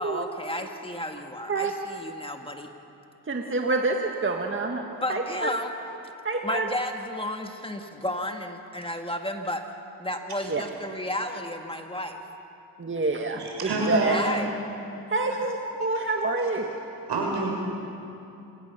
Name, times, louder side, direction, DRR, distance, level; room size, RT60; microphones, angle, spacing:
voice 1, 0.0-2.7 5.0-5.7 6.4-9.6 10.0-12.2 14.1-14.5, left 1 dB, 15° left, 4 dB, 1.7 m, -32 dB
voice 2, 3.3-5.6 6.2-6.7 10.5-10.6 12.8-14.5 15.1-16.7, right 3 dB, 30° right, 2 dB, 1.9 m, -27 dB
voice 3, 13.4-14.2 15.9-16.0 17.1-17.5, right 2 dB, 75° right, -1 dB, 6.6 m, -27 dB
28.0 x 18.0 x 7.0 m, 2.8 s
cardioid pair, 65°, 41 cm